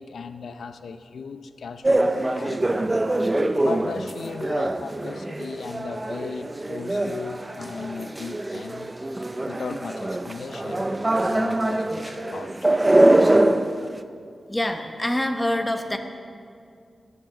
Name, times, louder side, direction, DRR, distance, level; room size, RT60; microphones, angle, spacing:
voice 1, 0.0-2.9 3.5-8.9 9.4-12.7, left 5 dB, 85° left, 10 dB, 0.5 m, -37 dB
sound 1, 1.8-13.8, right 1 dB, 15° right, 0.5 m, -23 dB
voice 2, 14.5-16.0, left 1 dB, 10° left, 5 dB, 0.9 m, -25 dB
18.5 x 7.3 x 7.0 m, 2.3 s
wide cardioid pair, 170°, 0 cm